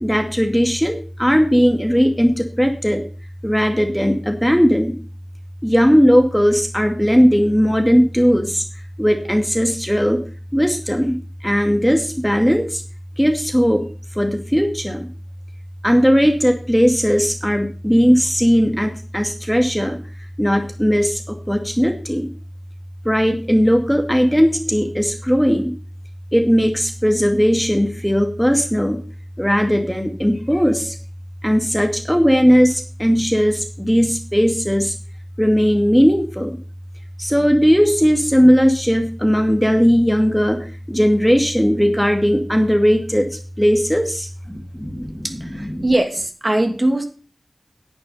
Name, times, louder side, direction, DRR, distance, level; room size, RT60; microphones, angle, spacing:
voice 1, 0.0-3.0 3.4-4.9 5.6-8.6 9.0-10.2 10.5-11.2 11.4-12.8 13.2-13.9 14.2-15.1 15.8-20.0 20.4-22.3 23.0-25.7 26.3-29.0 29.4-30.9 31.4-34.9 35.4-36.6 37.2-45.2 45.7-45.9, equal, ahead, 5 dB, 2.3 m, -17 dB
voice 2, 45.2-47.0, right 1 dB, 35° right, 5 dB, 2.7 m, -20 dB
10.5 x 8.8 x 5.7 m, 0.38 s
wide cardioid pair, 50°, 0 cm